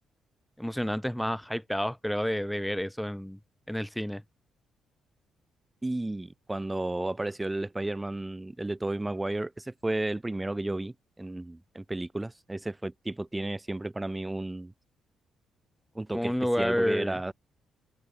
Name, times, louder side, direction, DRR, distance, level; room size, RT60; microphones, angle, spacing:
voice 1, 0.6-3.4 3.7-4.2 16.1-17.2, equal, 5° left, 0.8 m, -29 dB
voice 2, 5.8-14.7 16.0-17.3, right 2 dB, 15° right, 5.4 m, -33 dB
open air
cardioid pair, 90°, 0 cm